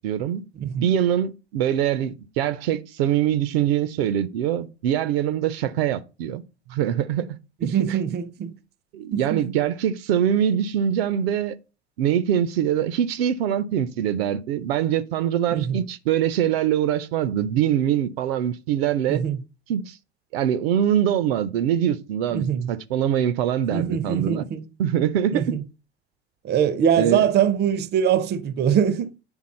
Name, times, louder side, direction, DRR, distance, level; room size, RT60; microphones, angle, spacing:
voice 1, 0.0-0.4 0.8-6.4 6.7-7.7 8.9-11.6 12.0-19.2 19.7-20.0 20.3-24.5 24.8-25.6 27.0-27.3, right 10 dB, 65° right, 0.7 m, -23 dB
voice 2, 0.6-0.9 7.6-8.6 9.1-9.4 15.5-15.8 19.1-19.4 22.3-22.7 23.7-24.7 25.3-25.6 26.4-29.1, right 8 dB, 30° right, 0.6 m, -23 dB
8.9 x 3.6 x 4.2 m
hypercardioid pair, 80°, 33 cm